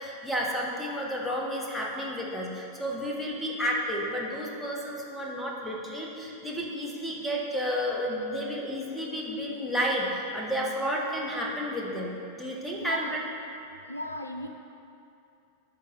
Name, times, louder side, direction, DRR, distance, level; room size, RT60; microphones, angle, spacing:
voice 1, 0.0-13.2, equal, 5° left, -3 dB, 1.3 m, -31 dB
voice 2, 12.8-13.2 13.8-14.5, left 1 dB, 80° left, 5 dB, 0.4 m, -35 dB
13.0 x 5.4 x 3.1 m, 2.7 s
figure-of-eight pair, 90°, 0 cm